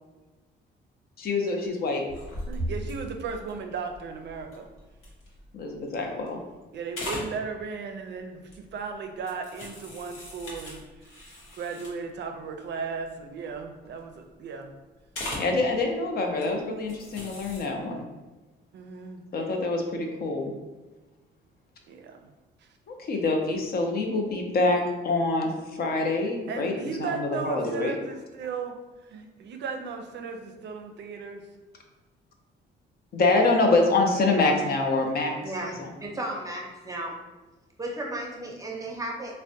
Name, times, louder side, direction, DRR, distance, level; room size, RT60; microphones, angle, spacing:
voice 1, 1.2-2.0 5.5-6.4 15.4-18.0 19.3-20.5 22.9-27.9 33.1-35.4 35.8-35.9, left 3 dB, 50° left, 2 dB, 0.5 m, -25 dB
sound 1, 2.1-5.7 6.2-6.6 6.9-7.3 8.5-8.8 9.3-12.2 12.6-12.7 12.9-13.2 13.5-14.1 15.1-15.6 16.3-16.4 16.8-17.6, equal, 90° left, 0.9 m, -38 dB
voice 2, 2.5-4.7 6.7-14.7 18.7-19.3 20.3-20.5 21.9-22.3 22.6-22.8 26.2-28.7 29.0-31.5, right 5 dB, 60° right, 5 dB, 0.4 m, -36 dB
voice 3, 35.4-37.2 37.8-39.3, right 1 dB, 15° right, -1 dB, 0.6 m, -34 dB
3.3 x 2.1 x 2.6 m, 1.2 s
cardioid pair, 90°, 20 cm